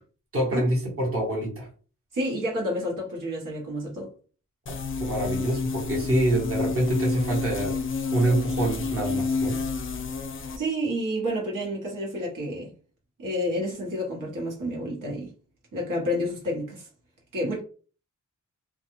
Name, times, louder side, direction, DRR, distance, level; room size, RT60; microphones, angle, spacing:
voice 1, 0.3-1.7 4.7-7.8 8.1-9.6, right 1 dB, 45° right, 1.1 m, -26 dB
voice 2, 2.1-4.1 10.6-12.7 13.2-15.3 15.7-16.9 17.3-17.6, equal, 85° right, 1.2 m, -29 dB
sound 1, 4.7-10.6, left 4 dB, 40° left, 0.4 m, -29 dB
2.4 x 2.3 x 3.0 m
wide cardioid pair, 110°, 32 cm